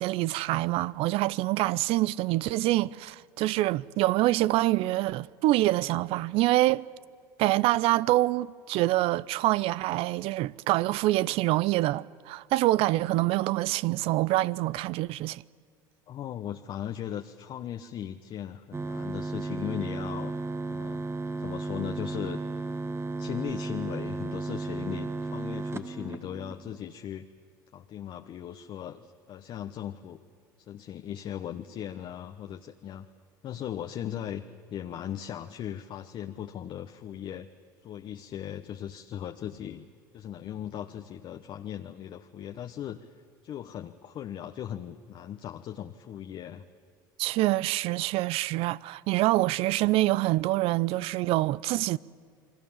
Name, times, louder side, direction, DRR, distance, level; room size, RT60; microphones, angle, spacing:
voice 1, 0.0-6.8 7.4-15.4 47.2-52.0, right 17 dB, 60° right, 0.5 m, -26 dB
voice 2, 16.1-20.3 20.7-21.0 21.4-22.4 23.2-27.3 27.7-30.2 30.7-33.1 33.4-34.4 34.7-37.5 37.8-39.9 40.1-46.6, left 10 dB, 50° left, 1.0 m, -38 dB
sound 1, 18.7-26.8, right 3 dB, 25° right, 1.6 m, -34 dB
29.5 x 22.5 x 7.3 m
hypercardioid pair, 80°, 11 cm